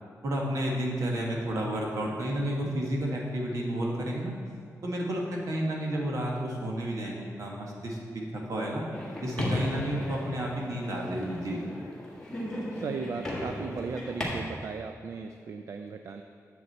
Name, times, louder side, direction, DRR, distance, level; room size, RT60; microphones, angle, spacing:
voice 1, 0.2-4.3 4.8-8.8 9.2-11.6, right 1 dB, 70° right, -2 dB, 1.5 m, -31 dB
sound 1, 8.9-14.2, left 1 dB, 10° left, 1.6 m, -35 dB
voice 2, 12.7-16.2, right 5 dB, 55° right, 6 dB, 0.4 m, -37 dB
9.4 x 7.3 x 4.2 m, 2.1 s
wide cardioid pair, 170°, 6 cm